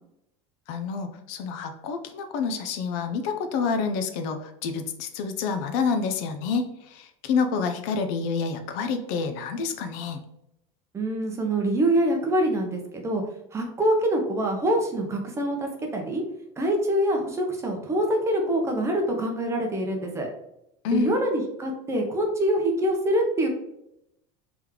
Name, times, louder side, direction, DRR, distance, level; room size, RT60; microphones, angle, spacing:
voice 1, 0.7-10.2 20.8-21.2, left 5 dB, 65° left, 7 dB, 0.6 m, -28 dB
voice 2, 10.9-13.2 13.5-16.2 16.6-20.3 20.9-23.5, right 1 dB, 15° right, 2 dB, 0.7 m, -25 dB
3.5 x 3.0 x 3.6 m, 0.82 s
supercardioid pair, 145°, 16 cm